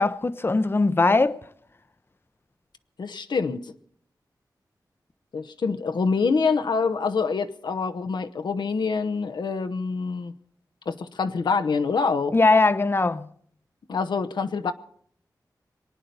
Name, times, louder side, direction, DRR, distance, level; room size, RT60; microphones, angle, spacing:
voice 1, 0.0-1.4 12.3-13.3, left 3 dB, 30° left, 0.6 m, -20 dB
voice 2, 3.0-3.7 5.3-10.3 10.9-12.3 13.9-14.7, left 5 dB, 85° left, 0.9 m, -26 dB
22.5 x 9.3 x 6.8 m
wide cardioid pair, 60°, 7 cm